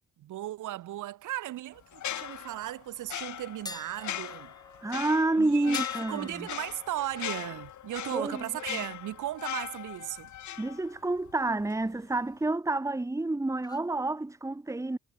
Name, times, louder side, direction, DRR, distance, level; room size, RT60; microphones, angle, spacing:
voice 1, 0.2-4.5 5.4-5.8 6.1-10.3, right 14 dB, 80° right, 3.7 m, -36 dB
sound 1, 1.9-11.3 11.6-11.8, left 11 dB, 70° left, 3.6 m, -39 dB
sound 2, 3.7-9.5 9.9-10.1 13.6-13.9, left 2 dB, 15° left, 2.5 m, -48 dB
voice 2, 4.8-6.5 8.1-8.4 8.7-8.8 10.6-15.0, right 2 dB, 10° right, 1.4 m, -29 dB
cardioid pair, 90°, 30 cm